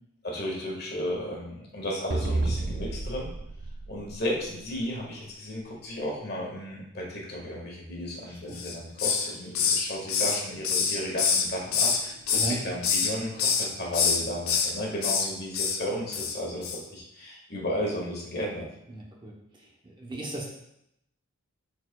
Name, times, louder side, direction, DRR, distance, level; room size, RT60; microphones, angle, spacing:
voice 1, 0.2-3.3 3.9-18.6, equal, 50° left, -2 dB, 1.7 m, -34 dB
sound 1, 2.1-4.8, right 2 dB, 40° right, 0.4 m, -31 dB
voice 2, 8.3-8.6 12.3-12.6 18.9-19.3 19.8-20.5, right 2 dB, 20° right, -2 dB, 0.9 m, -36 dB
Hiss, 8.5-9.3 9.5-12.0 12.3-13.1 13.4-13.7 13.9-14.7 15.0-15.3 15.5-15.8 16.1-16.4 16.6-16.8, left 6 dB, 80° left, 0.8 m, -25 dB
11.0 x 4.5 x 2.3 m, 0.80 s
head